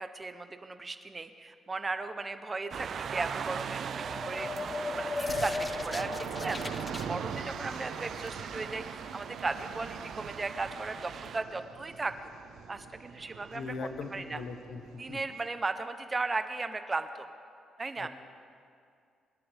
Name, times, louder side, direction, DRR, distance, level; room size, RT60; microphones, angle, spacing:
voice 1, 0.0-4.5 4.9-6.7 7.0-12.3 12.7-13.7 14.1-14.4 15.0-17.3 17.8-18.1, right 3 dB, 25° right, 9 dB, 0.9 m, -36 dB
sound 1, 2.7-11.4, right 7 dB, 55° right, 0.5 m, -40 dB
sound 2, 3.9-7.1, left 3 dB, 25° left, 0.4 m, -36 dB
sound 3, 5.3-15.1, right 7 dB, 85° right, 1.1 m, -42 dB
voice 2, 13.5-14.8 15.1-15.2 18.0-18.1, left 4 dB, 65° left, 8 dB, 1.1 m, -39 dB
23.5 x 11.0 x 3.5 m, 2.3 s
cardioid pair, 90°, 0 cm